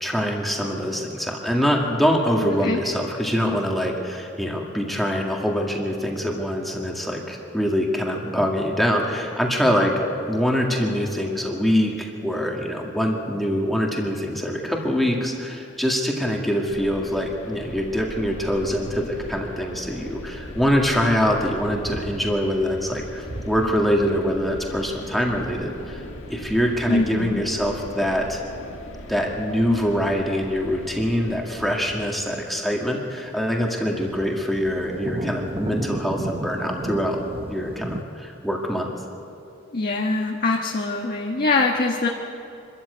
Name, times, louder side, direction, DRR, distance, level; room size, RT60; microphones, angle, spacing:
voice 1, 0.0-9.9 10.2-26.0 26.3-28.4 29.1-37.2 37.5-38.9, equal, ahead, -1 dB, 2.0 m, -24 dB
sound 1, 16.7-31.4, left 1 dB, 85° left, 2.0 m, -39 dB
sound 2, 20.3-22.4 22.8-22.9 23.3-38.0, right 1 dB, 30° right, 0.9 m, -37 dB
voice 2, 26.9-27.5 39.7-42.1, left 3 dB, 50° left, 0 dB, 1.4 m, -23 dB
25.0 x 13.5 x 8.1 m, 2.7 s
head